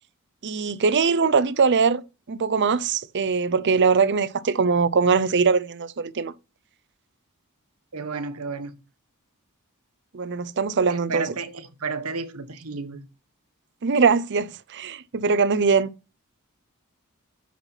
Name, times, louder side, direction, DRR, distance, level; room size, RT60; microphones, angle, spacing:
voice 1, 0.4-2.0 2.3-6.3 10.1-11.3 13.8-15.9, right 5 dB, 50° right, 0.6 m, -21 dB
voice 2, 7.9-8.8 10.9-13.1, right 4 dB, 75° right, 1.2 m, -32 dB
8.5 x 5.7 x 4.0 m
head